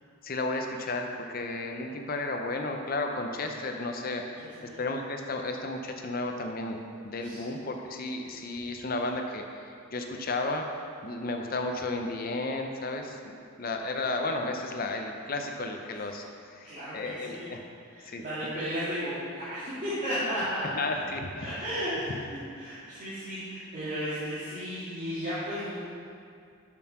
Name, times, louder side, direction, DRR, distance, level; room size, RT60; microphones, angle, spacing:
voice 1, 0.2-4.2 4.8-10.6 11.0-16.2 16.5-17.6 18.0-18.2 20.8-21.6, left 2 dB, 40° left, 3 dB, 0.6 m, -33 dB
voice 2, 16.7-17.5 17.9-20.7 21.4-22.2 22.5-25.8, equal, 35° right, -13 dB, 2.3 m, -34 dB
7.2 x 6.5 x 5.8 m, 2.3 s
head